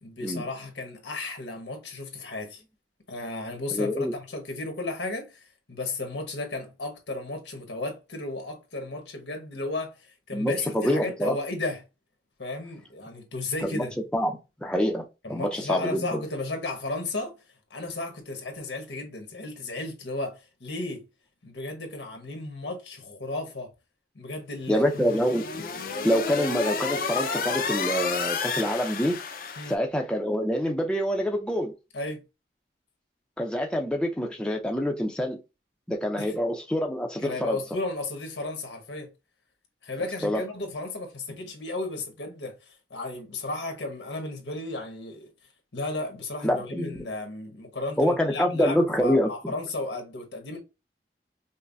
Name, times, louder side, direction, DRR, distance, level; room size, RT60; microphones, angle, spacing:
voice 1, 0.0-2.6 3.1-11.8 12.4-13.9 15.2-17.3 17.7-21.0 21.4-23.7 24.1-24.8 25.1-25.2 29.6-29.7 31.9-32.2 36.2-36.3 37.2-39.1 39.8-45.3 45.7-50.6, left 2 dB, 85° left, 1.2 m, -34 dB
voice 2, 3.7-4.1 10.3-11.4 13.6-13.9 14.1-16.2 24.7-25.4 26.0-29.2 29.7-31.7 33.4-35.4 35.9-37.6 40.2-40.4 46.4-47.0 48.0-49.5, equal, 5° left, 0.5 m, -26 dB
sound 1, 24.7-29.7, left 5 dB, 50° left, 0.5 m, -31 dB
5.4 x 2.1 x 2.6 m
head